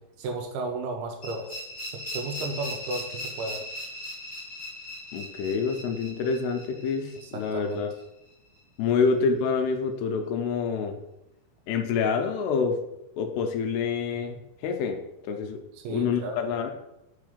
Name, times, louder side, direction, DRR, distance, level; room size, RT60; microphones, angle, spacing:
voice 1, 0.2-1.5 1.9-3.6 7.2-7.8 15.7-16.4, right 3 dB, 85° right, 4 dB, 2.4 m, -34 dB
sound 1, 1.2-8.0, left 1 dB, 25° left, 1.2 m, -39 dB
voice 2, 5.1-7.9 8.8-11.0 11.7-12.8 13.2-15.6 15.9-16.7, left 5 dB, 80° left, 5 dB, 2.6 m, -27 dB
6.3 x 3.7 x 5.0 m, 0.88 s
omnidirectional pair, 4.9 m